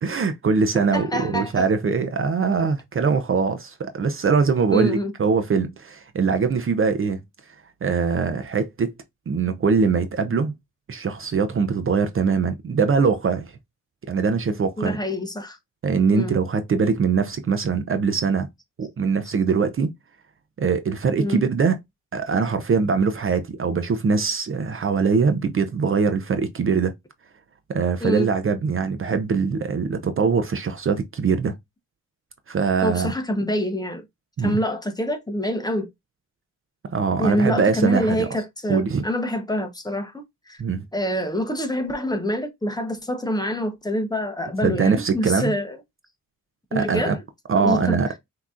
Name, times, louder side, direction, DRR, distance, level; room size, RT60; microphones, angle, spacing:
voice 1, 0.0-7.2 7.5-7.6 7.8-8.9 9.3-10.5 10.9-13.5 14.1-15.0 15.8-18.5 18.8-19.9 20.6-21.8 22.1-26.9 27.7-31.5 32.5-33.1 34.4-34.6 36.9-38.3 38.7-39.0 40.6-40.8 44.6-45.5 46.7-47.2 47.5-48.1, right 5 dB, 40° right, 0.6 m, -22 dB
voice 2, 0.7-1.7 4.7-5.1 14.8-15.6 16.1-16.4 21.2-21.4 28.0-28.3 32.8-34.0 34.4-35.9 37.2-40.6 40.9-45.8 46.7-47.2 47.5-48.0, equal, 10° left, 1.0 m, -26 dB
5.9 x 2.9 x 2.4 m
cardioid pair, 115°, 32 cm